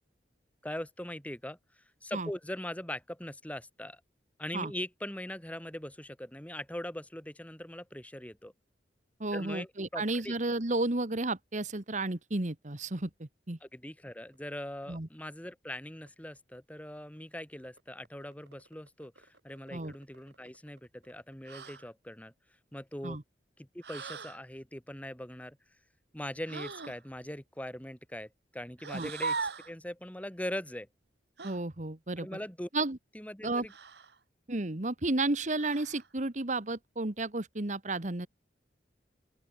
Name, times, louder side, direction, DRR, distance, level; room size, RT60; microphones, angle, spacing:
voice 1, 0.6-1.6 2.0-4.0 4.4-8.5 9.3-10.3 13.6-22.3 22.7-23.2 23.6-25.6 26.1-30.9 32.2-32.7 33.1-33.7, left 1 dB, 10° left, 2.5 m, -41 dB
voice 2, 9.2-13.6 14.9-15.1 19.7-19.9 23.0-23.2 28.9-29.1 31.4-32.3 32.7-33.0 33.4-33.7 34.5-38.3, right 2 dB, 45° right, 1.4 m, -32 dB
sound 1, 14.3-14.4 14.8-14.9 15.2-15.3 15.5-16.1 16.5-17.2 17.6-21.8, right 2 dB, 90° right, 7.9 m, -63 dB
sound 2, 21.5-21.9 23.8-24.4 26.5-27.0 28.8-29.7 31.4-31.6 33.7-34.2 35.6-36.1, right 4 dB, 65° right, 1.6 m, -39 dB
open air
head